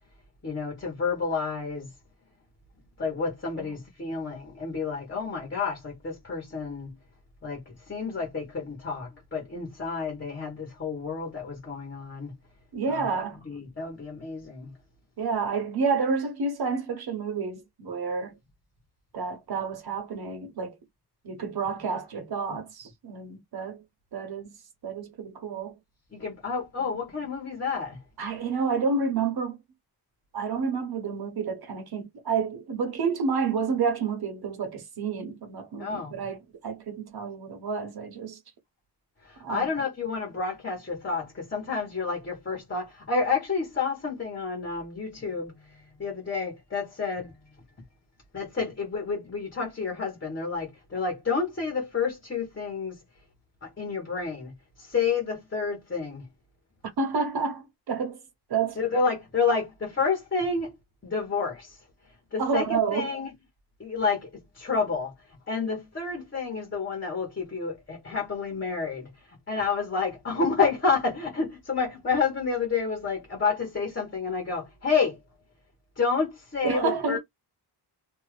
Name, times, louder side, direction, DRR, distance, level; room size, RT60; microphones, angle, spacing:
voice 1, 0.4-1.9 3.0-6.9 7.4-12.3 12.9-14.7 26.1-28.0 35.8-36.2 39.2-47.3 48.3-53.0 53.6-56.3 58.8-60.7 61.0-61.8 62.3-63.3 63.8-65.1 65.5-75.2 76.0-77.2, left 5 dB, 30° left, 1.2 m, -30 dB
voice 2, 12.7-13.4 15.2-18.3 19.1-20.8 21.2-23.8 24.1-24.5 24.8-25.7 28.2-29.6 30.3-38.4 39.4-39.7 57.0-58.2 58.5-58.8 62.4-63.1 76.6-77.2, right 5 dB, 65° right, 1.0 m, -29 dB
2.7 x 2.4 x 3.2 m
wide cardioid pair, 180°, 41 cm